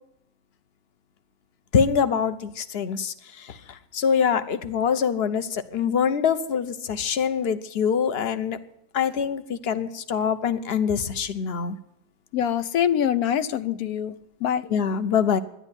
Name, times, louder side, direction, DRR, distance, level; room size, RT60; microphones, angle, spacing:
voice 1, 1.7-3.1 3.9-8.6 8.9-11.8 14.7-15.4, left 7 dB, 50° left, 1.1 m, -24 dB
voice 2, 12.3-14.1 14.4-14.6, left 9 dB, 80° left, 1.2 m, -24 dB
12.0 x 11.0 x 9.8 m
omnidirectional pair, 1.6 m